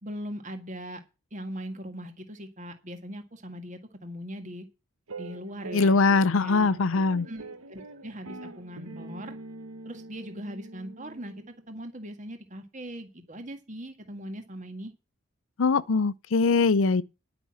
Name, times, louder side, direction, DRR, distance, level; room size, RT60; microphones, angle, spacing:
voice 1, 0.0-1.0 1.3-4.7 5.2-6.0 6.3-6.8 7.3-9.4 9.8-14.9, equal, 35° right, 1.9 m, -40 dB
sound 1, 5.1-11.6, right 2 dB, 85° right, 1.2 m, -43 dB
voice 2, 5.7-7.3 15.6-17.0, left 4 dB, 70° left, 0.6 m, -22 dB
11.0 x 6.2 x 7.6 m
head